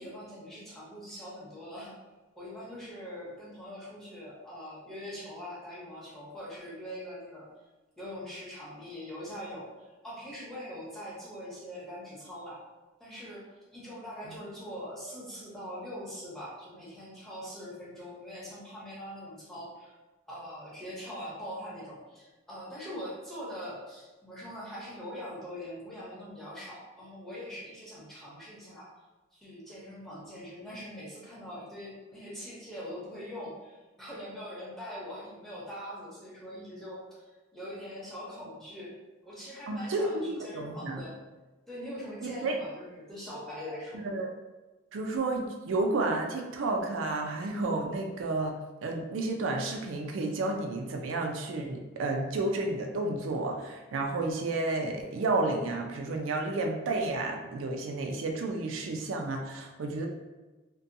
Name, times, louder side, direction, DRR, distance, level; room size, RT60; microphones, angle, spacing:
voice 1, 0.0-1.9 2.4-7.5 8.0-9.7 10.0-12.6 13.0-13.4 13.7-19.9 20.3-28.9 29.3-37.2 37.5-38.9 39.2-41.2 41.7-44.0, equal, ahead, -7 dB, 0.7 m, -42 dB
voice 2, 39.7-41.0 42.2-42.6 43.9-44.3 44.9-48.5 48.8-60.1, right 2 dB, 80° right, 2 dB, 0.4 m, -31 dB
2.6 x 2.2 x 2.6 m, 1.1 s
head